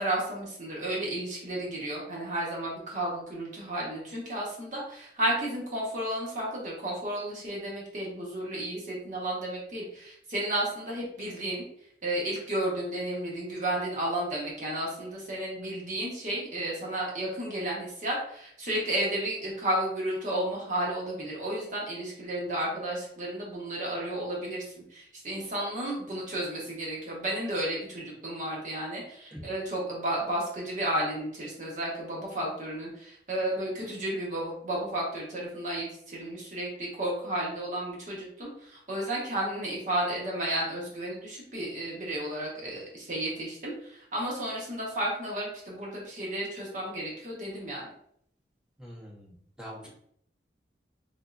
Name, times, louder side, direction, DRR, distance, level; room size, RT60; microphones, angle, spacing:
voice 1, 0.0-11.6 12.0-24.6 24.9-47.9, right 1 dB, 45° right, -4 dB, 1.2 m, -32 dB
voice 2, 48.8-49.9, equal, 5° right, -5 dB, 0.9 m, -44 dB
3.7 x 3.4 x 2.5 m, 0.69 s
head